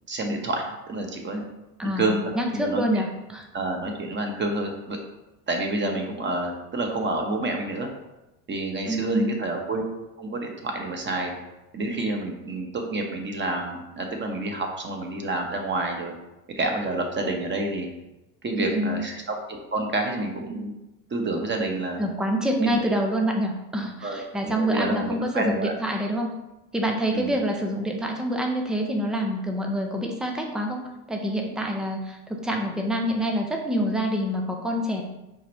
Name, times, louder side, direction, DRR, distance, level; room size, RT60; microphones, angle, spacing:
voice 1, 0.1-1.4 1.8-2.2 2.5-3.0 3.5-5.0 5.5-7.9 8.5-9.8 10.2-11.3 11.7-16.1 16.6-17.9 18.4-20.7 21.1-22.0 22.6-22.8 24.0-25.7 27.1-27.3, right 2 dB, 25° right, 3 dB, 0.9 m, -28 dB
voice 2, 1.8-3.4 8.9-9.4 18.6-19.0 22.0-26.3 26.7-30.8 31.1-35.0, equal, ahead, 2 dB, 0.3 m, -26 dB
4.8 x 2.5 x 4.2 m, 0.96 s
hypercardioid pair, 85°, 48 cm